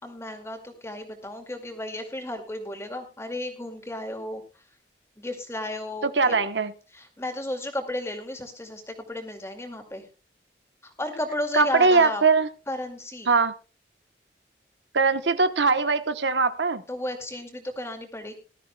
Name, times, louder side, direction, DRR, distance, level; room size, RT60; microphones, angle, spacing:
voice 1, 0.0-4.4 5.2-6.3 6.9-10.0 11.0-12.2 12.7-13.3 16.9-18.3, left 1 dB, 15° left, 4 dB, 2.3 m, -33 dB
voice 2, 6.0-6.7 11.5-12.5 13.3-13.5 14.9-16.8, right 4 dB, 90° right, 11 dB, 1.1 m, -21 dB
19.5 x 13.0 x 2.3 m, 0.33 s
head